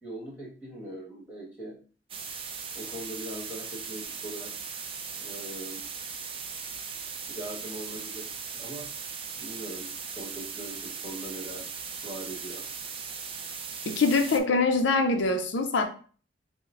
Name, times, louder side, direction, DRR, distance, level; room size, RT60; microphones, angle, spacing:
voice 1, 0.0-1.8 2.7-4.5 5.1-5.8 7.3-8.9 9.3-12.6, right 1 dB, 10° right, -5 dB, 1.5 m, -41 dB
sound 1, 2.1-14.4, right 6 dB, 30° right, 0.4 m, -38 dB
voice 2, 13.9-15.8, left 3 dB, 80° left, 5 dB, 0.5 m, -24 dB
6.1 x 2.1 x 2.4 m, 0.41 s
head